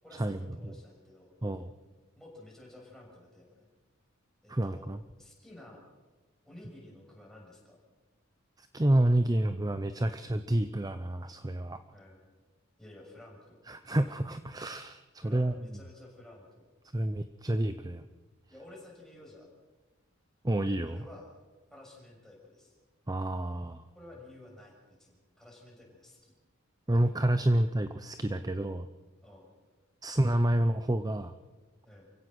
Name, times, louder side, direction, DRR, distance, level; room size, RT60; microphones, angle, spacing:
voice 1, 0.0-1.3 2.1-3.7 4.4-4.9 5.2-5.8 6.4-7.8 11.9-12.3 12.8-13.6 15.2-16.7 18.5-19.5 20.8-21.3 21.7-22.8 23.9-26.3 27.4-27.5 29.2-29.5 31.8-32.1, left 1 dB, ahead, -2 dB, 6.6 m, -52 dB
voice 2, 4.5-5.0 8.6-11.8 13.7-15.5 16.9-18.0 20.4-21.0 23.1-23.8 26.9-28.9 30.0-31.3, right 1 dB, 20° right, 10 dB, 0.7 m, -29 dB
28.5 x 16.5 x 6.3 m, 1.2 s
head